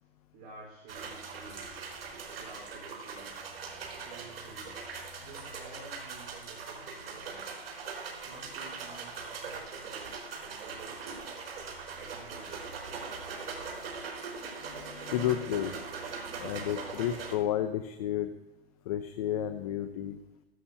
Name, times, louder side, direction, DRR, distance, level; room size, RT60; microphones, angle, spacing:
voice 1, 0.3-1.7 2.3-3.4 4.0-4.9 5.2-7.5 8.1-11.4 11.9-13.6, right 3 dB, 35° right, -5 dB, 4.4 m, -52 dB
sound 1, 0.9-17.4, right 5 dB, 70° right, 4.6 m, -41 dB
voice 2, 14.6-15.7 16.4-18.3 18.9-20.2, left 11 dB, 35° left, 10 dB, 0.6 m, -31 dB
14.5 x 13.0 x 2.8 m, 1.1 s
hypercardioid pair, 165°, 31 cm